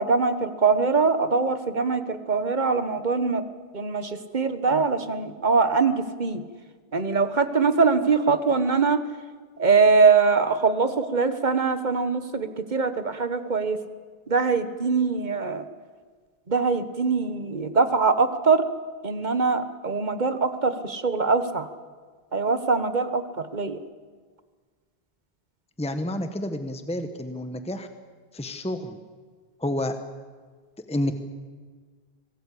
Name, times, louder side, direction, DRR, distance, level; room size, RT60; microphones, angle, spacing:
voice 1, 0.0-3.4 3.7-6.4 6.9-9.0 9.6-13.8 14.3-15.6 16.5-18.6 19.0-21.7 22.3-23.8, right 4 dB, 50° right, 10 dB, 1.4 m, -22 dB
voice 2, 25.8-27.9 28.3-29.0 29.6-29.9 30.9-31.1, left 1 dB, 5° left, 8 dB, 1.1 m, -29 dB
25.5 x 17.5 x 8.4 m, 1.5 s
omnidirectional pair, 1.0 m